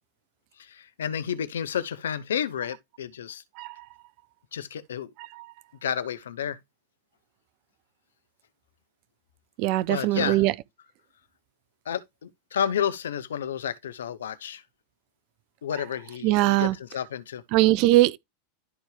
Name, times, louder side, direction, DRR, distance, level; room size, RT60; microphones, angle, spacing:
voice 1, 0.6-3.4 4.5-5.1 5.8-6.6 9.9-10.4 11.9-14.6 15.6-17.4, left 8 dB, 80° left, 1.0 m, -31 dB
voice 2, 9.6-10.5 16.2-16.7 17.5-18.2, right 17 dB, 55° right, 0.8 m, -20 dB
12.0 x 4.5 x 3.3 m
hypercardioid pair, 95°, 0 cm